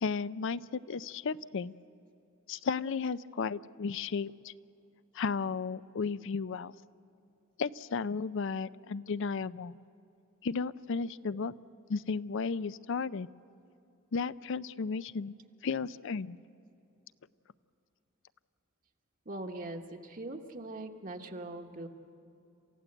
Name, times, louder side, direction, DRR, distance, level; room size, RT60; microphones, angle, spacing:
voice 1, 0.0-1.7 2.5-4.5 5.1-6.7 7.6-9.8 10.4-11.5 11.9-13.3 14.1-15.3 15.6-16.4, left 5 dB, 65° left, 17 dB, 0.5 m, -34 dB
voice 2, 19.2-21.9, right 2 dB, 40° right, 3 dB, 1.2 m, -41 dB
27.5 x 15.5 x 7.9 m, 2.8 s
head